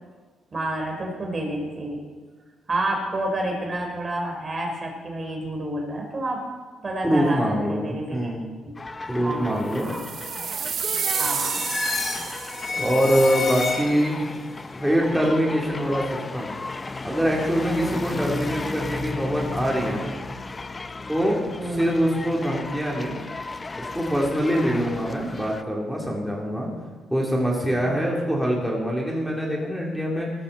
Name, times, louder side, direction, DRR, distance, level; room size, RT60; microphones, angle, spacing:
voice 1, 0.5-2.0 2.7-6.4 6.8-7.4 7.7-8.3 8.6-8.7 9.2-10.1 11.2-11.6 12.7-12.9 17.7-18.1 21.6-21.9 24.7-24.9 27.8-28.1, right 1 dB, 35° right, 2 dB, 4.2 m, -30 dB
voice 2, 7.0-8.5 9.1-9.9 12.8-14.2 14.8-16.1 16.3-16.5 17.0-20.2 21.1-21.4 21.7-23.2 23.9-26.7 27.1-30.3, equal, 5° right, -3 dB, 3.5 m, -24 dB
sound 1, 8.8-25.6, left 3 dB, 25° left, 0.7 m, -35 dB
sound 2, 9.8-13.0, right 7 dB, 55° right, 0.6 m, -30 dB
sound 3, 10.8-14.2, left 3 dB, 50° left, 5.9 m, -30 dB
18.5 x 13.5 x 4.3 m, 1.4 s
cardioid pair, 90°, 0 cm